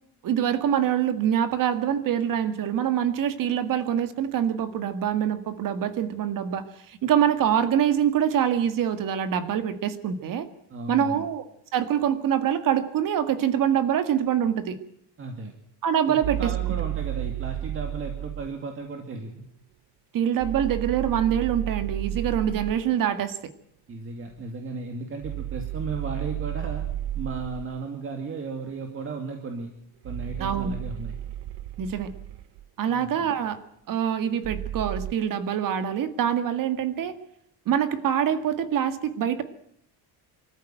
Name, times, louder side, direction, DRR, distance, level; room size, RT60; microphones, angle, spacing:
voice 1, 0.2-10.5 10.9-11.5 11.7-14.8 15.8-16.5 20.1-23.4 30.4-30.7 31.8-32.1 32.8-33.6 33.9-37.2 37.7-39.4, right 9 dB, 45° right, 11 dB, 1.9 m, -25 dB
voice 2, 10.7-11.3 15.2-15.5 16.1-19.5 23.9-26.8 27.1-29.7 30.0-31.1 32.9-33.3, right 4 dB, 30° right, 4 dB, 2.4 m, -35 dB
sound 1, 16.2-18.5 20.4-22.9 25.2-27.8 30.0-32.6 34.4-35.1, right 13 dB, 65° right, 0.9 m, -32 dB
24.5 x 14.0 x 9.1 m, 0.70 s
cardioid pair, 165°, 44 cm